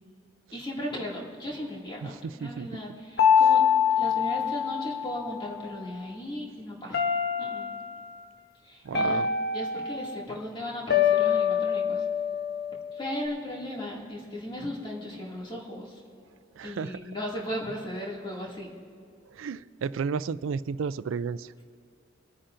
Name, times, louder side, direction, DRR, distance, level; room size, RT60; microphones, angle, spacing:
voice 1, 0.5-3.6 4.0-7.1 7.4-7.7 8.6-9.2 9.5-12.0 12.9-16.0 16.6-18.7, left 1 dB, 25° left, -4 dB, 2.3 m, -36 dB
voice 2, 2.0-2.7 8.8-9.3 16.6-17.0 19.3-21.5, right 5 dB, 90° right, 16 dB, 0.4 m, -32 dB
sound 1, 3.2-5.5 6.9-8.0 8.9-10.2 10.9-13.3, left 7 dB, 55° left, 0.9 m, -25 dB
25.5 x 9.9 x 2.6 m, 2.3 s
head